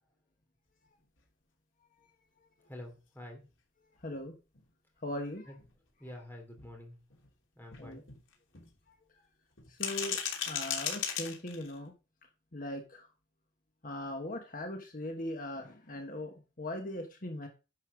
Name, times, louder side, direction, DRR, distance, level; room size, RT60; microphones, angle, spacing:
voice 1, 2.7-3.4 5.5-5.6 6.0-7.0 7.5-8.1, left 1 dB, 10° left, 2 dB, 3.2 m, -47 dB
sound 1, 4.0-4.1 4.5-4.6 5.1-5.2 5.6-5.7 6.1-6.2 6.6-6.7 7.1-7.3 7.7-8.7 9.6-11.8, left 8 dB, 85° left, 3.1 m, -36 dB
voice 2, 4.0-4.3 5.0-5.5 7.8-8.0 8.9-9.0 9.7-10.2 10.5-11.9 12.5-13.1 13.8-17.5, left 1 dB, 45° left, 4 dB, 1.4 m, -39 dB
11.0 x 5.5 x 6.3 m, 0.31 s
head